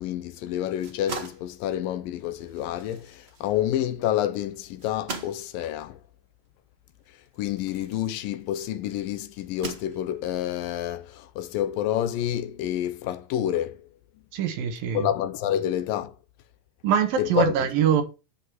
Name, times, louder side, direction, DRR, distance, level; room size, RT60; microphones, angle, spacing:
voice 1, 0.0-6.0 7.4-13.9 14.9-16.2 17.2-17.5, left 11 dB, 80° left, 2.5 m, -28 dB
sound 1, 0.6-8.7 9.3-10.4, right 3 dB, 40° right, 0.9 m, -42 dB
voice 2, 14.3-15.1 16.8-18.0, right 8 dB, 80° right, 3.4 m, -23 dB
12.0 x 5.4 x 5.9 m
omnidirectional pair, 4.0 m